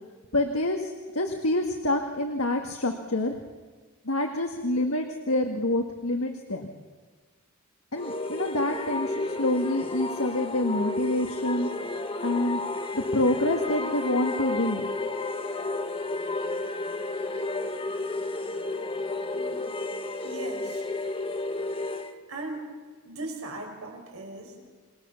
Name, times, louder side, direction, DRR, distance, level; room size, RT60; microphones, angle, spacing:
voice 1, 0.3-3.4 4.1-6.7 7.9-11.7 12.2-12.6 12.9-14.9, left 1 dB, 90° left, 3 dB, 1.9 m, -27 dB
sound 1, 8.0-22.1, left 2 dB, 25° left, 1.6 m, -32 dB
voice 2, 19.3-19.7 20.2-20.9 22.3-22.7 23.0-24.7, right 2 dB, 85° right, 1 dB, 6.0 m, -38 dB
29.0 x 21.0 x 7.1 m, 1.5 s
head